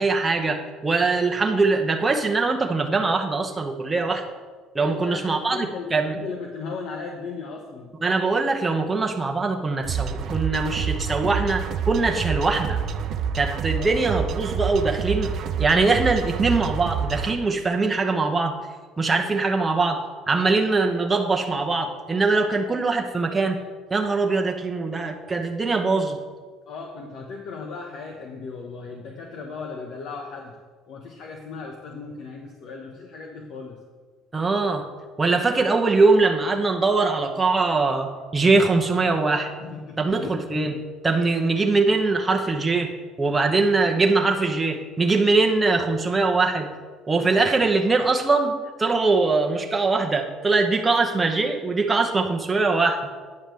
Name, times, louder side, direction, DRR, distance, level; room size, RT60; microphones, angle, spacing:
voice 1, 0.0-4.3 4.7-6.2 8.0-12.8 13.3-18.6 19.0-23.6 23.9-26.2 34.3-34.8 35.2-39.5 40.0-40.7 41.0-42.9 43.2-46.7 47.1-53.1, right 3 dB, 15° right, 2 dB, 0.9 m, -22 dB
voice 2, 4.8-7.9 13.7-13.9 26.7-30.6 30.9-33.8 39.6-40.4, left 4 dB, 60° left, 1 dB, 1.1 m, -36 dB
sound 1, 9.8-17.3, right 7 dB, 50° right, 0.6 m, -28 dB
9.6 x 5.1 x 7.6 m, 1.5 s
cardioid pair, 140°, 0 cm